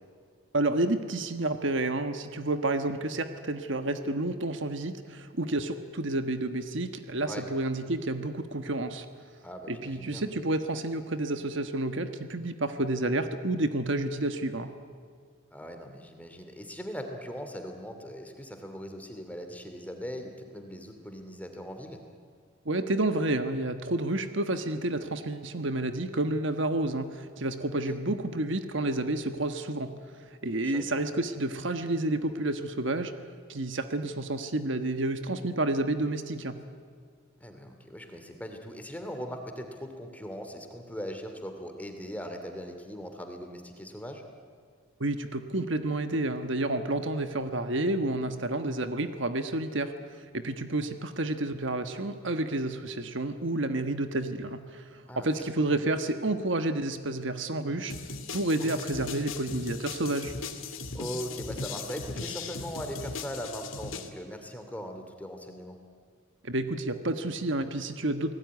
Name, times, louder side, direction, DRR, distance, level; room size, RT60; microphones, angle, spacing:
voice 1, 0.5-9.0 9.7-14.7 22.6-29.9 30.4-33.1 33.5-36.6 45.0-49.9 50.3-57.9 58.3-60.3 66.4-68.3, right 2 dB, 60° right, 8 dB, 1.3 m, -30 dB
voice 2, 9.4-10.3 15.5-22.0 27.8-28.0 30.6-31.0 37.4-44.2 55.1-55.8 58.6-58.8 60.9-65.8, equal, 5° left, 5 dB, 2.6 m, -40 dB
sound 1, 57.9-64.1, left 4 dB, 75° left, 2.3 m, -38 dB
29.0 x 19.0 x 9.6 m, 2.1 s
head